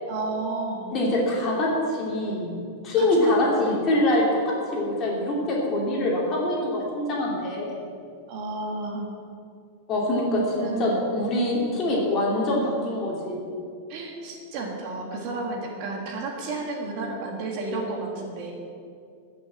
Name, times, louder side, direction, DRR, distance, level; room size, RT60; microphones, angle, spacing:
voice 1, 0.1-1.0 3.0-3.8 8.3-9.1 10.6-10.8 13.9-18.5, right 3 dB, 35° right, 0 dB, 1.7 m, -32 dB
voice 2, 0.9-2.5 2.8-7.8 9.9-13.5, left 1 dB, 25° left, -3 dB, 2.7 m, -24 dB
14.0 x 6.4 x 8.3 m, 2.3 s
supercardioid pair, 175°, 0 cm